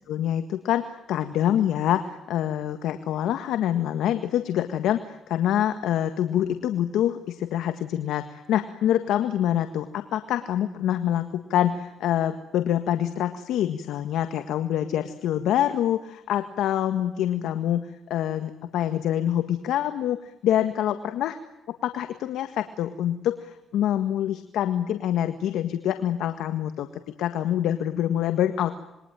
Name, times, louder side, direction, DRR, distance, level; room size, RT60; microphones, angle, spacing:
voice 1, 0.1-17.8 18.1-21.4 21.8-26.9 27.2-28.7, left 11 dB, 85° left, 9 dB, 1.7 m, -26 dB
27.5 x 22.5 x 9.2 m, 0.92 s
cardioid pair, 90°, 0 cm